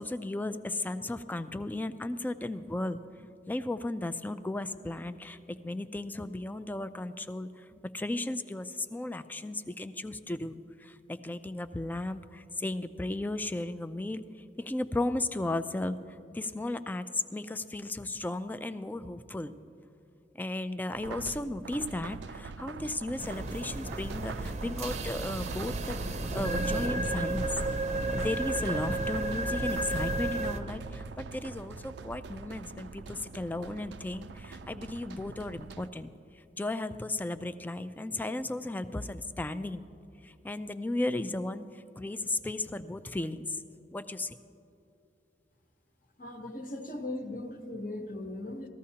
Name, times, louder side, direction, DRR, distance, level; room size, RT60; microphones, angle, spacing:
voice 1, 0.0-7.7 7.9-14.2 14.6-19.6 20.3-27.5 28.1-39.8 40.2-43.6 43.9-44.4, left 2 dB, 10° left, 11 dB, 0.3 m, -35 dB
sound 1, 20.9-35.9, right 4 dB, 80° right, 0.4 m, -43 dB
sound 2, 23.2-30.6, right 2 dB, 40° right, 0.6 m, -33 dB
voice 2, 46.2-48.7, left 1 dB, 50° left, 4 dB, 1.0 m, -38 dB
19.5 x 14.0 x 2.8 m, 2.7 s
head